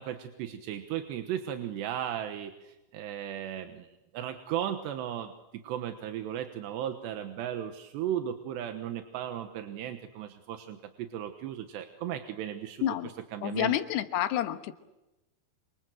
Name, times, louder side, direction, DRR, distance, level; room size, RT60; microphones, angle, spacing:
voice 1, 0.0-3.9 4.1-5.3 5.6-12.8 13.3-13.7, right 10 dB, 85° right, 6 dB, 3.4 m, -36 dB
voice 2, 12.8-13.1 13.4-14.8, left 12 dB, 75° left, 9 dB, 3.3 m, -29 dB
27.0 x 26.0 x 7.8 m, 0.98 s
omnidirectional pair, 4.9 m